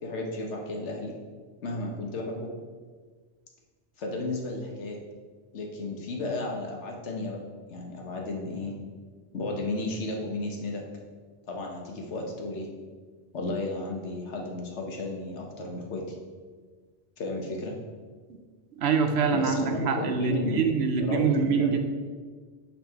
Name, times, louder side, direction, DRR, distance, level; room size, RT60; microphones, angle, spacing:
voice 1, 0.0-1.2 1.6-2.5 4.0-5.0 5.5-7.4 7.7-8.7 9.3-10.8 11.5-12.7 13.3-16.2 17.2-17.7 19.3-20.7 21.0-21.8, left 2 dB, 75° left, 1 dB, 1.4 m, -33 dB
voice 2, 18.8-21.9, right 5 dB, 70° right, 6 dB, 0.9 m, -25 dB
5.8 x 5.1 x 4.5 m, 1.5 s
omnidirectional pair, 1.2 m